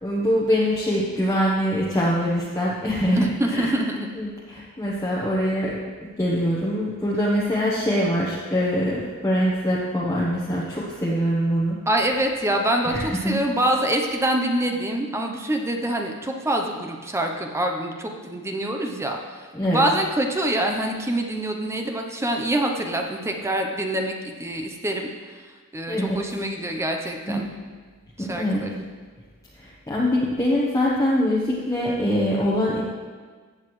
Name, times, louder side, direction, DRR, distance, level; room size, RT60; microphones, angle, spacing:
voice 1, 0.0-3.8 4.2-5.8 6.2-11.8 12.8-13.4 19.5-19.8 25.9-26.2 27.3-27.4 28.2-28.6 29.6-32.8, equal, 15° left, -6 dB, 1.1 m, -23 dB
voice 2, 3.2-4.1 11.9-19.2 19.7-25.4 25.7-27.5 28.2-28.8, right 1 dB, 10° right, 3 dB, 0.7 m, -25 dB
15.0 x 8.1 x 3.2 m, 1.5 s
head